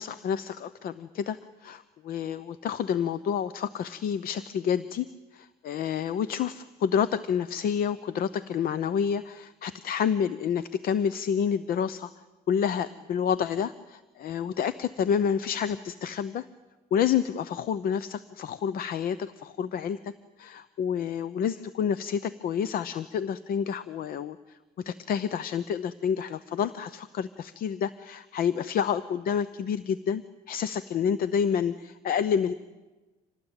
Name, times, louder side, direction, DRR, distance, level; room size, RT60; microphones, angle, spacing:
voice 1, 0.0-12.1 12.5-16.5 16.9-20.1 20.4-32.5, left 8 dB, 60° left, 15 dB, 0.7 m, -29 dB
26.0 x 18.5 x 8.9 m, 1.2 s
cardioid pair, 110°, 17 cm